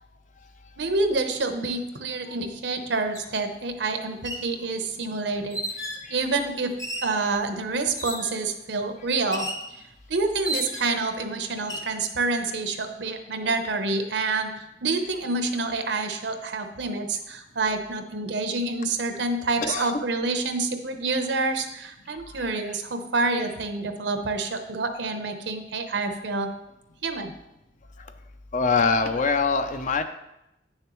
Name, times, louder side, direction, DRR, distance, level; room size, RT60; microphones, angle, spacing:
voice 1, 0.8-6.7 7.0-9.5 10.1-26.5 27.0-27.3, right 3 dB, 80° right, 6 dB, 0.8 m, -28 dB
sound 1, 3.1-3.3 4.1-4.5 5.5-6.1 6.8-7.2 8.0-8.4 9.3-9.7 10.4-11.0 11.6-11.9, right 1 dB, 20° left, 0.8 m, -33 dB
voice 2, 19.6-19.9 28.5-30.0, left 4 dB, 45° left, 9 dB, 0.5 m, -23 dB
9.3 x 6.6 x 3.0 m, 0.88 s
head